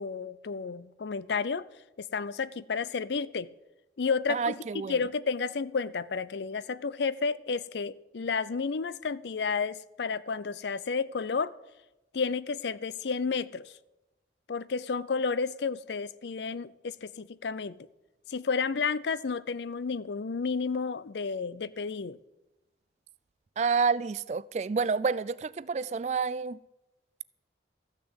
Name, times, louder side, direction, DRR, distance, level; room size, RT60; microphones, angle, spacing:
voice 1, 0.0-1.7 2.0-3.5 4.0-4.6 4.9-11.5 12.1-13.6 14.5-17.7 18.3-22.2, left 5 dB, 70° left, 0.5 m, -31 dB
voice 2, 4.3-5.0 23.6-26.6, right 5 dB, 40° right, 0.3 m, -29 dB
14.0 x 6.8 x 8.0 m
head